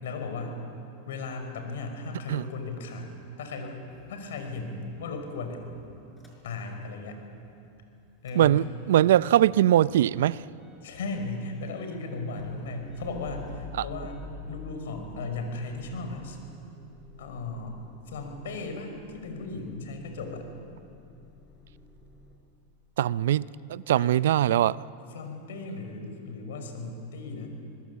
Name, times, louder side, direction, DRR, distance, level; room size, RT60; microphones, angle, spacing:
voice 1, 0.0-0.6 1.1-3.1 3.4-3.8 4.1-5.6 6.4-7.2 8.2-8.7 10.8-14.2 14.5-16.4 17.2-17.8 18.1-20.5 24.0-24.1 25.1-27.5, left 3 dB, 80° left, 5.3 m, -36 dB
Motor vehicle (road) / Engine starting / Idling, 3.9-7.1 7.4-22.4, left 3 dB, 10° left, 5.6 m, -50 dB
voice 2, 8.4-10.4 23.0-24.9, right 12 dB, 80° right, 0.5 m, -22 dB
26.0 x 20.5 x 8.4 m
hypercardioid pair, 120°, 0 cm